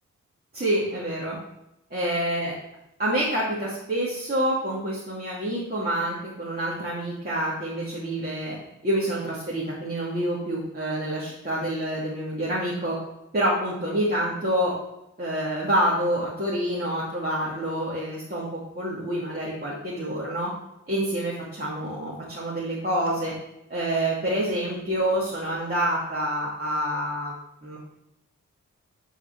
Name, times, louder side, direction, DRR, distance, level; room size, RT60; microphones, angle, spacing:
voice 1, 0.5-1.4 1.9-2.5 3.0-8.6 8.8-13.0 13.3-14.7 15.2-18.5 18.7-20.5 20.9-23.3 23.7-27.3 27.6-27.8, right 1 dB, 30° right, -8 dB, 2.8 m, -27 dB
9.8 x 5.0 x 6.2 m, 0.88 s
cardioid pair, 70°, 30 cm